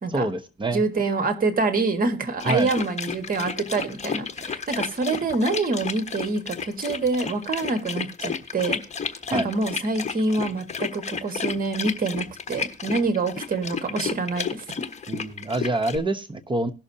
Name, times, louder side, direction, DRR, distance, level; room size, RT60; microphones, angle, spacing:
voice 1, 0.1-0.8 2.4-2.7 9.3-9.5 15.1-16.7, right 2 dB, 25° right, 10 dB, 0.9 m, -26 dB
voice 2, 0.7-8.8 9.3-14.6, right 3 dB, 45° right, 8 dB, 1.7 m, -26 dB
sound 1, 2.4-16.0, left 6 dB, 35° left, 1.2 m, -32 dB
18.0 x 6.4 x 2.8 m, 0.39 s
cardioid pair, 90°, 20 cm